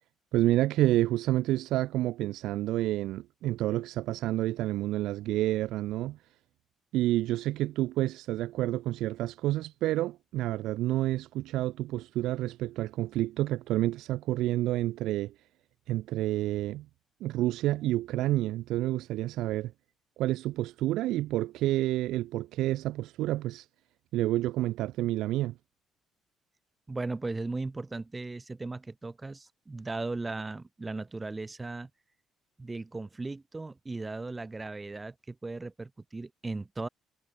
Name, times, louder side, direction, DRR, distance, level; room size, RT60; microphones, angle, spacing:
voice 1, 0.3-6.2 6.9-15.3 15.9-16.9 17.2-19.7 20.2-23.7 24.1-25.5, right 15 dB, 85° right, 1.2 m, -29 dB
voice 2, 26.9-31.9 32.6-36.9, right 3 dB, 20° right, 2.0 m, -37 dB
cardioid pair, 105°, 0 cm